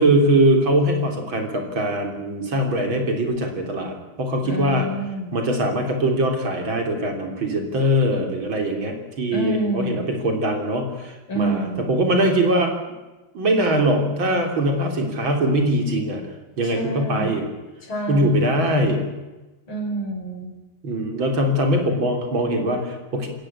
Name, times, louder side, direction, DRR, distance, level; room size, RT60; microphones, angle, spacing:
voice 1, 0.0-4.9 5.3-12.7 13.3-16.2 16.6-17.5 18.1-19.0 20.8-23.3, right 1 dB, 70° right, 4 dB, 4.1 m, -22 dB
voice 2, 4.4-5.4 9.3-10.1 11.3-12.1 16.6-17.4 17.8-18.5 19.7-20.5, right 1 dB, 85° left, 3 dB, 5.6 m, -28 dB
26.5 x 14.5 x 8.8 m, 1.1 s
omnidirectional pair, 2.2 m